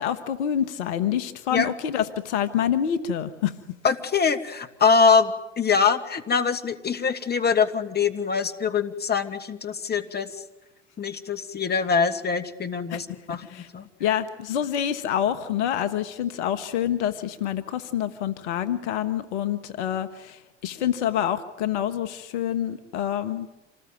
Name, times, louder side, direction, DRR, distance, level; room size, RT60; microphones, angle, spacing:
voice 1, 0.0-3.5 12.9-13.0 13.3-13.7 14.0-23.5, left 10 dB, 70° left, 11 dB, 1.6 m, -27 dB
voice 2, 3.8-10.3 11.0-13.8, left 5 dB, 25° left, 8 dB, 2.4 m, -23 dB
27.5 x 19.5 x 9.4 m, 0.98 s
hypercardioid pair, 75°, 36 cm